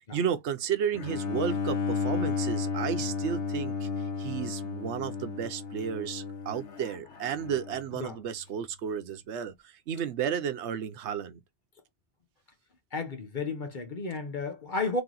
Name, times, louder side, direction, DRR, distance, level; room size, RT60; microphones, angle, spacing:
voice 1, 0.1-3.9 4.2-11.4, right 8 dB, 80° right, 1.0 m, -33 dB
Bowed string instrument, 0.9-8.0, left 5 dB, 80° left, 1.1 m, -33 dB
voice 2, 12.9-15.0, left 3 dB, 50° left, 1.0 m, -33 dB
3.3 x 3.0 x 3.8 m
omnidirectional pair, 1.2 m